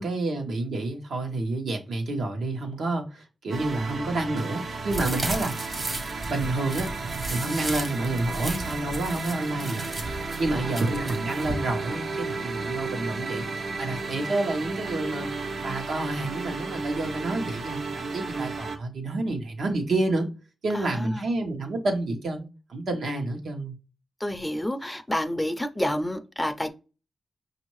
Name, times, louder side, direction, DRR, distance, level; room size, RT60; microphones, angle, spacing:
voice 1, 0.0-5.5 6.3-6.9 7.3-10.0 10.4-15.3 15.6-20.3 20.6-23.8, right 2 dB, 75° right, 1.1 m, -29 dB
sound 1, 3.5-18.8, right 4 dB, 60° right, 0.7 m, -33 dB
sound 2, 4.9-11.5, right 2 dB, 45° right, 1.1 m, -35 dB
voice 2, 10.5-10.8 20.7-21.2 24.2-26.7, left 1 dB, 10° left, 0.5 m, -30 dB
5.3 x 2.7 x 3.1 m
cardioid pair, 75°, 0 cm